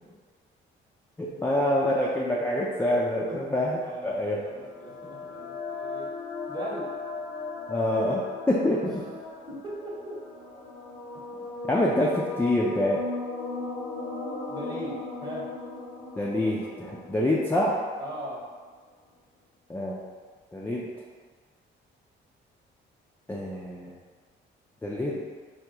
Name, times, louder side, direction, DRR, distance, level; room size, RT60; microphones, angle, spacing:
voice 1, 1.2-4.4 7.7-8.2 8.5-8.9 11.7-13.1 16.2-17.9 19.7-20.0 20.5-20.9 23.3-23.9 24.8-25.2, left 1 dB, 10° left, -4 dB, 0.3 m, -26 dB
voice 2, 3.8-6.1 6.5-6.9 9.5-10.1 11.3-11.4 14.5-15.5 18.0-18.4, equal, 20° right, -5 dB, 0.9 m, -39 dB
sound 1, 4.2-18.2, left 3 dB, 60° left, 0.6 m, -37 dB
3.4 x 2.3 x 2.8 m, 1.5 s
cardioid pair, 90°, 20 cm